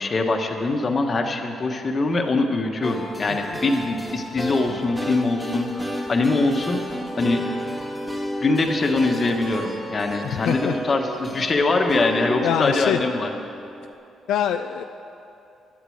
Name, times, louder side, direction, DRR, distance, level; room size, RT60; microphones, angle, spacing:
voice 1, 0.0-6.8 7.2-7.4 8.4-13.3, left 3 dB, 35° left, 4 dB, 1.3 m, -23 dB
sound 1, 2.8-13.9, equal, 10° right, 2.0 m, -32 dB
voice 2, 10.2-10.8 12.4-13.0 14.3-14.8, left 10 dB, 80° left, 7 dB, 0.4 m, -24 dB
11.5 x 8.3 x 7.9 m, 2.7 s
cardioid pair, 90°, 0 cm